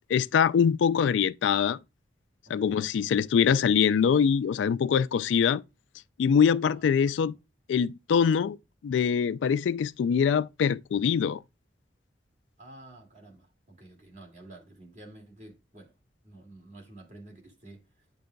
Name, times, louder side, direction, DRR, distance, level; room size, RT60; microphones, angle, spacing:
voice 1, 0.1-1.8 2.5-5.6 6.2-7.3 7.7-8.6 8.8-11.4, left 7 dB, 85° left, 0.3 m, -23 dB
voice 2, 2.5-2.9 6.7-7.3 12.6-15.9 16.2-18.1, right 2 dB, 45° right, 2.1 m, -50 dB
9.5 x 5.2 x 2.2 m
head